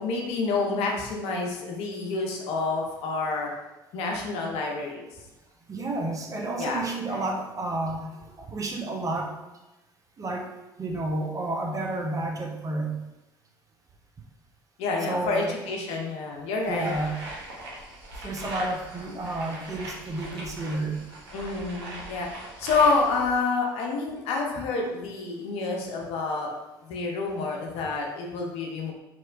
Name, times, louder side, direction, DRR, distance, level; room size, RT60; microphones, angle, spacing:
voice 1, 0.0-3.5 3.9-5.1 6.6-7.2 14.8-16.9 21.3-22.3 22.6-26.5 26.8-28.9, left 3 dB, 60° left, 0 dB, 0.5 m, -28 dB
voice 2, 5.7-8.1 8.4-9.3 10.2-10.5 10.8-13.0 15.1-15.5 16.7-17.2 18.2-21.0, right 2 dB, 30° right, 1 dB, 0.5 m, -31 dB
sound 1, 16.6-23.4, right 1 dB, 80° right, 0.5 m, -40 dB
2.9 x 2.1 x 2.4 m, 1.0 s
hypercardioid pair, 60°, 12 cm